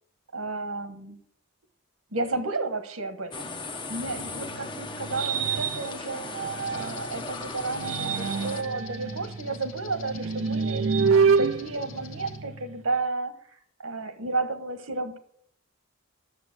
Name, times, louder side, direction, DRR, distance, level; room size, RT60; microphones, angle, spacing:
voice 1, 0.3-1.2 2.1-3.5 3.9-6.3 6.7-15.2, right 3 dB, 85° right, 9 dB, 1.4 m, -32 dB
sound 1, 3.3-8.6, left 3 dB, 20° left, 0.8 m, -37 dB
sound 2, 4.0-7.1 7.6-12.8, right 5 dB, 70° right, 0.5 m, -28 dB
sound 3, 6.6-12.4, left 5 dB, 75° left, 1.4 m, -46 dB
11.5 x 7.3 x 6.1 m, 0.65 s
head